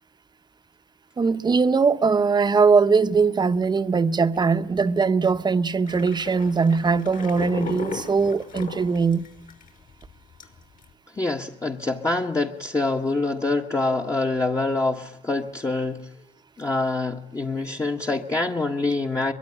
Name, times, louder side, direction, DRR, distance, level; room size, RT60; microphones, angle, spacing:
voice 1, 1.2-9.2, right 5 dB, 25° right, 1.1 m, -21 dB
sound 1, 5.9-9.7 10.0-10.1 10.4-10.8, left 6 dB, 50° left, 6.0 m, -36 dB
voice 2, 11.1-16.1 16.6-19.3, left 2 dB, 20° left, 1.6 m, -25 dB
23.0 x 23.0 x 10.0 m
cardioid pair, 110°, 17 cm